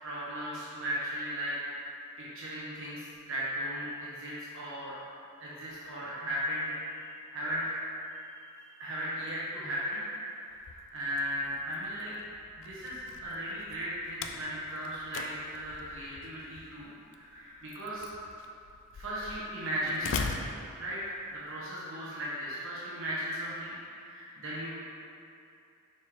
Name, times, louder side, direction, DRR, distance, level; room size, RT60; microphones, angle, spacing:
voice 1, 0.0-1.5 1.9-5.0 5.4-7.1 7.3-7.8 8.5-10.0 10.3-12.1 12.6-18.1 18.9-20.5 20.8-24.8, equal, 60° right, -8 dB, 1.3 m, -37 dB
Slam, 10.5-21.4, left 5 dB, 60° left, 0.4 m, -42 dB
6.2 x 4.5 x 3.7 m, 2.6 s
head